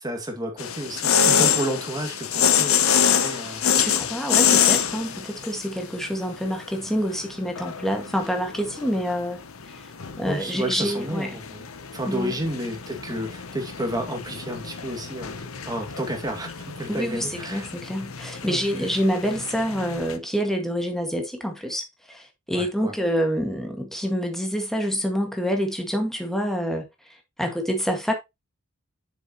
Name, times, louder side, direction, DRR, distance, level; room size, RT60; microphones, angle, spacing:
voice 1, 0.0-3.6 10.3-11.7 11.9-15.4 15.6-17.7 18.4-18.6 22.5-22.9 27.4-27.5, right 1 dB, 20° right, 2.2 m, -31 dB
sound 1, 0.6-20.2, left 8 dB, 75° left, 0.8 m, -26 dB
voice 2, 3.8-9.4 10.2-11.3 12.1-12.3 16.9-26.8 27.4-28.1, equal, ahead, 1.9 m, -27 dB
7.4 x 6.9 x 3.0 m
head